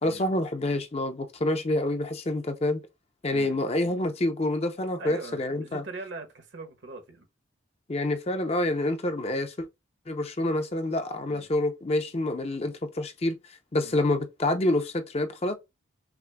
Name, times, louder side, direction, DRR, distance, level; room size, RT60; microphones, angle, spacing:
voice 1, 0.0-2.8 3.2-5.8 7.9-9.5 10.1-15.5, left 1 dB, 30° left, 0.5 m, -27 dB
voice 2, 3.3-3.6 5.0-7.3 11.3-11.5 13.8-14.0, right 3 dB, 65° right, 1.1 m, -42 dB
5.8 x 2.1 x 2.2 m
head